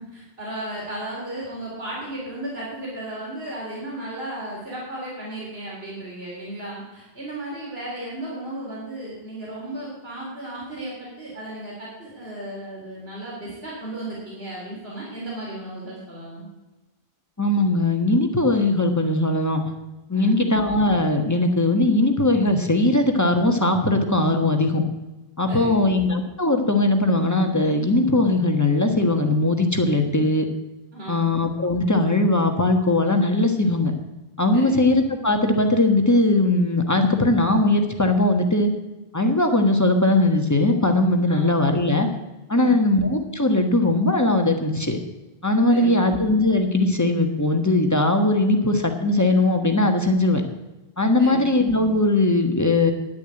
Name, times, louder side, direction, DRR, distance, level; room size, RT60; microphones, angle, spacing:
voice 1, 0.0-16.4 20.1-20.5 25.5-25.8 30.9-31.3 34.5-34.8 41.3-41.5 42.5-42.9 45.7-46.1 51.2-51.5, right 1 dB, 80° right, -5 dB, 4.1 m, -35 dB
voice 2, 17.4-19.6 20.1-24.8 25.4-30.5 31.1-33.9 34.4-38.7 39.1-42.1 42.5-45.0 45.4-50.4 51.0-52.9, left 2 dB, 15° left, 4 dB, 1.3 m, -20 dB
10.5 x 7.1 x 9.0 m, 1.1 s
omnidirectional pair, 1.0 m